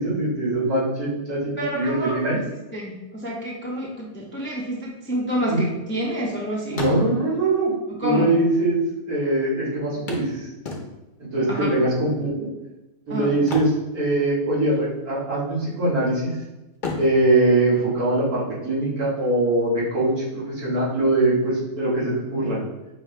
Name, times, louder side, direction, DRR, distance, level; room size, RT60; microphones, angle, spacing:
voice 1, 0.0-2.4 5.5-5.6 6.7-7.7 8.0-8.8 9.1-10.5 11.3-12.5 13.1-16.4 17.0-22.6, right 2 dB, 80° right, -7 dB, 2.2 m, -22 dB
voice 2, 1.6-2.4 2.7-6.8 8.0-8.4 11.5-11.7 13.1-13.3, equal, 15° left, -3 dB, 0.4 m, -28 dB
sound 1, 5.3-6.3 6.6-7.5 8.4-8.5 8.7-8.8 10.1-11.3 13.3-14.6 14.9-15.1 15.6-16.3 16.7-18.5 20.5-20.6 21.0-21.1, left 3 dB, 40° left, 0.8 m, -34 dB
5.5 x 2.7 x 3.2 m, 1.0 s
omnidirectional pair, 1.6 m